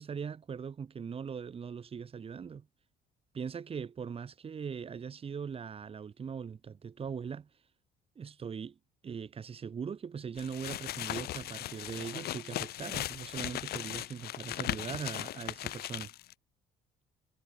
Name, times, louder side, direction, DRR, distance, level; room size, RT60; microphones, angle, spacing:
voice 1, 0.0-2.7 3.3-7.5 8.2-8.8 9.0-16.1, right 6 dB, 35° right, 2.2 m, -40 dB
sound 1, 10.4-16.3, left 14 dB, 70° left, 1.7 m, -38 dB
cardioid pair, 110°, 17 cm